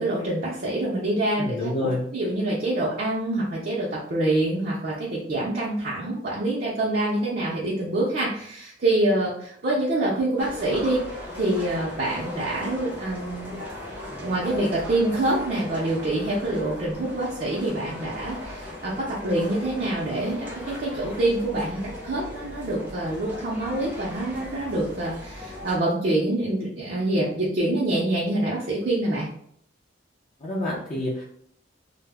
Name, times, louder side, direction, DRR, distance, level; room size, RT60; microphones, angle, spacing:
voice 1, 0.0-13.5 14.2-29.3, right 1 dB, 50° right, -5 dB, 0.5 m, -26 dB
voice 2, 1.4-2.1 30.4-31.2, left 1 dB, 40° left, -6 dB, 0.6 m, -28 dB
sound 1, 10.4-25.8, left 1 dB, 10° right, 0.6 m, -38 dB
2.0 x 2.0 x 3.4 m, 0.66 s
head